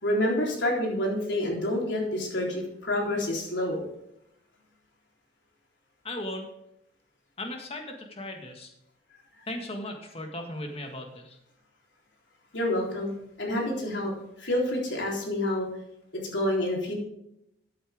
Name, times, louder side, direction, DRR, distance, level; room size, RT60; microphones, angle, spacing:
voice 1, 0.0-3.8 12.5-13.1 13.4-14.1 14.4-15.7 16.1-16.9, left 1 dB, 90° left, -1 dB, 3.7 m, -28 dB
voice 2, 6.0-6.5 7.4-8.7 9.5-11.4, left 1 dB, 35° left, 3 dB, 1.8 m, -37 dB
13.5 x 8.7 x 3.6 m, 0.82 s
head